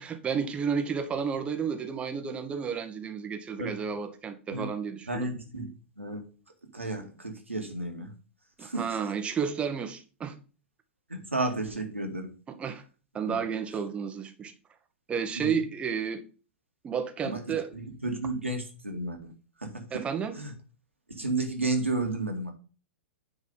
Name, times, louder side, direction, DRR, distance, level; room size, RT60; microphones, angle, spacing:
voice 1, 0.0-5.3 8.6-10.3 12.6-12.8 13.1-14.5 15.1-16.2 16.8-17.7 19.9-20.4, right 6 dB, 15° right, 1.1 m, -31 dB
voice 2, 5.1-6.2 6.7-8.1 8.6-9.0 11.1-12.3 13.3-13.4 15.3-15.6 17.2-19.3 19.6-20.1 20.3-20.5 21.1-22.5, right 2 dB, 80° right, 2.1 m, -32 dB
9.6 x 4.1 x 5.2 m
figure-of-eight pair, 105°, 7 cm